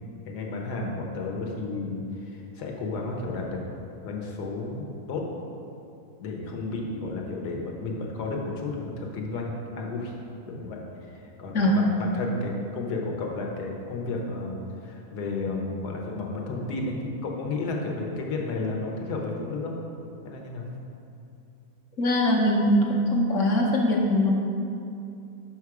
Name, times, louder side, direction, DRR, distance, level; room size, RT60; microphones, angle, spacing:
voice 1, 0.3-3.6 4.0-5.3 6.2-10.1 10.5-10.8 11.1-19.8 20.2-20.7, left 3 dB, 80° left, 0 dB, 1.4 m, -32 dB
voice 2, 22.0-22.8 23.1-24.3, left 1 dB, 55° left, -2 dB, 1.1 m, -21 dB
5.9 x 5.5 x 4.7 m, 2.6 s
omnidirectional pair, 1.7 m